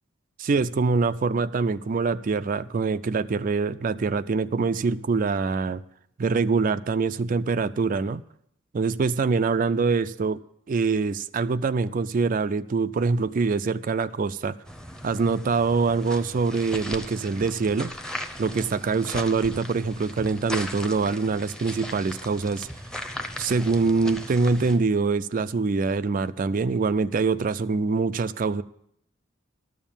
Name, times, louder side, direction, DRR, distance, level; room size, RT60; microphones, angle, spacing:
voice 1, 0.4-5.8 6.2-8.2 8.7-10.4 10.7-14.6 15.0-17.9 18.4-22.7 23.4-28.6, right 4 dB, 40° right, 0.3 m, -24 dB
sound 1, 14.6-24.8, equal, 5° left, 0.7 m, -38 dB
12.5 x 7.3 x 7.1 m
head